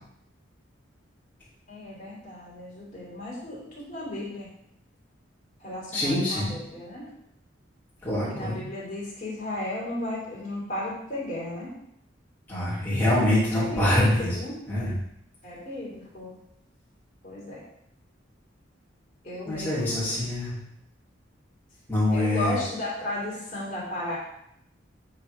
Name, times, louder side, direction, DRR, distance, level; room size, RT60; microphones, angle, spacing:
voice 1, 1.7-4.5 5.6-7.1 8.3-11.7 13.5-14.6 15.4-16.3 17.2-17.6 19.2-20.2 22.1-24.2, left 1 dB, 45° left, -6 dB, 3.0 m, -34 dB
voice 2, 5.9-6.5 8.0-8.6 12.5-14.3 14.7-14.9 19.4-20.6 21.9-22.6, left 1 dB, 10° left, -10 dB, 2.8 m, -24 dB
8.4 x 3.6 x 4.9 m, 0.75 s
head